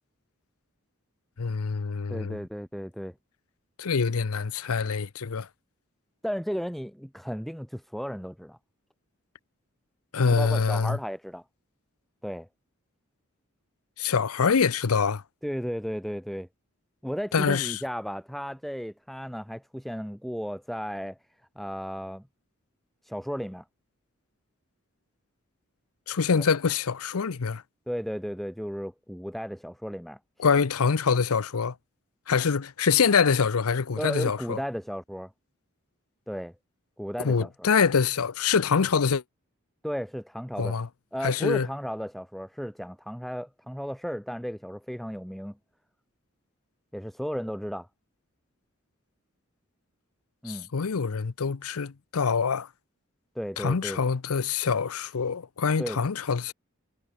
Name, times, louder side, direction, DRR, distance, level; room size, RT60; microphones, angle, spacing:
voice 1, 1.4-2.4 3.8-5.5 10.1-11.0 14.0-15.2 17.3-17.8 26.1-27.6 30.4-31.7 32.3-34.6 37.2-39.2 40.6-40.9 41.2-41.7 50.5-52.7 53.6-56.5, left 5 dB, 90° left, 0.7 m, -25 dB
voice 2, 2.1-3.2 6.2-8.6 10.4-11.4 12.2-12.5 15.4-16.5 17.0-21.2 21.6-22.2 23.0-23.6 26.3-26.4 27.9-30.2 34.0-35.3 36.3-36.5 37.0-37.5 39.8-40.8 41.1-45.6 46.9-47.9 50.4-50.7 53.4-54.0 55.8-56.0, equal, ahead, 1.6 m, -34 dB
head